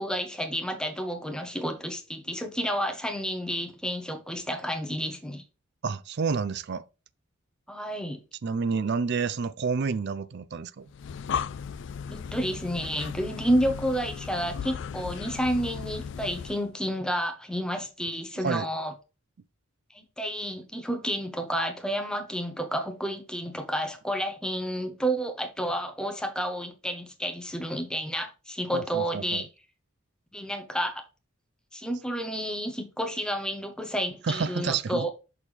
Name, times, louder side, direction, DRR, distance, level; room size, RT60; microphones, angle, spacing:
voice 1, 0.0-5.4 7.7-8.2 12.1-18.9 19.9-29.5 30.3-31.0 31.7-35.1, equal, 5° left, 0.9 m, -30 dB
voice 2, 5.8-6.8 8.4-10.9 18.4-18.7 28.7-29.5 34.2-35.1, right 5 dB, 50° right, 0.4 m, -29 dB
Breathing, 10.9-16.7, left 7 dB, 60° left, 0.3 m, -36 dB
6.3 x 5.7 x 3.3 m
head